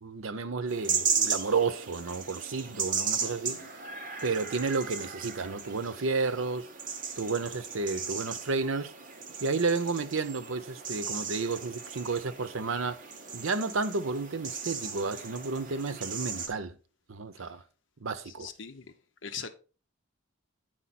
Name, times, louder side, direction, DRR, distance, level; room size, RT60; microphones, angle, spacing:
voice 1, 0.0-3.6 4.2-6.7 7.2-8.9 9.4-13.0 13.3-16.7 17.1-17.6 18.0-18.5, right 4 dB, 90° right, 0.7 m, -31 dB
sound 1, 0.7-16.5, right 6 dB, 40° right, 1.1 m, -36 dB
voice 2, 3.2-3.7 17.4-17.5 18.3-18.9 19.2-19.5, left 6 dB, 70° left, 0.8 m, -42 dB
8.9 x 5.0 x 4.1 m
head